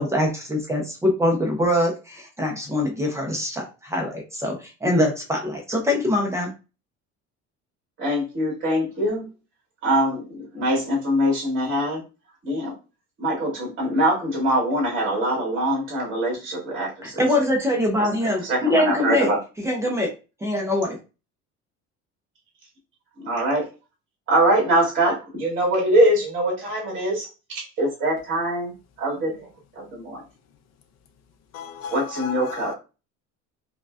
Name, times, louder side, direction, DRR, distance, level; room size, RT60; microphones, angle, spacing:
voice 1, 0.0-6.5 17.0-19.3 19.6-20.1 20.4-21.0, left 1 dB, 10° right, 0.5 m, -23 dB
voice 2, 8.0-9.3 9.8-12.0 12.4-12.7 13.2-17.2 18.0-18.1 18.4-19.4 23.2-23.7 24.3-27.3 27.8-28.7 29.0-29.5 29.8-30.2 31.9-32.7, right 1 dB, 45° right, 2.1 m, -23 dB
voice 3, 31.5-32.7, left 6 dB, 60° left, 0.6 m, -35 dB
5.0 x 2.3 x 2.3 m
cardioid pair, 175°, 29 cm